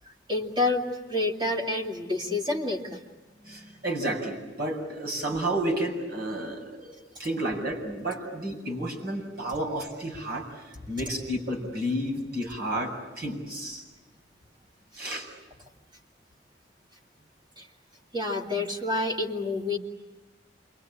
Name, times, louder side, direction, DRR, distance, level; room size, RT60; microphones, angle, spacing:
voice 1, 0.3-0.8 1.1-3.0 17.6-17.7 18.1-19.8, left 2 dB, 25° right, 1 dB, 2.6 m, -28 dB
voice 2, 3.5-6.9 7.2-10.5 10.9-13.8 15.0-15.3, right 1 dB, 60° right, 0 dB, 7.2 m, -31 dB
28.0 x 24.0 x 8.8 m, 1.1 s
head